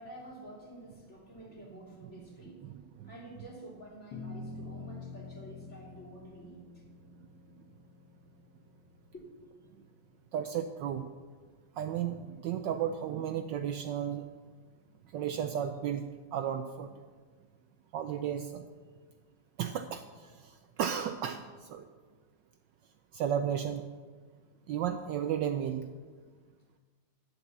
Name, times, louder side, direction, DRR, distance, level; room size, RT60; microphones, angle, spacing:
voice 1, 0.0-2.6 3.0-6.8 9.1-9.3, right 1 dB, 35° left, -3 dB, 3.0 m, -49 dB
voice 2, 2.6-3.1 10.3-11.0 11.8-14.3 15.1-16.0 16.3-16.9 17.9-18.6 19.6-21.9 23.1-23.9 24.7-25.9, right 9 dB, 75° right, 8 dB, 1.1 m, -34 dB
sound 1, 4.1-10.7, left 3 dB, 85° left, 1.9 m, -47 dB
10.5 x 8.0 x 7.1 m, 1.5 s
omnidirectional pair, 2.3 m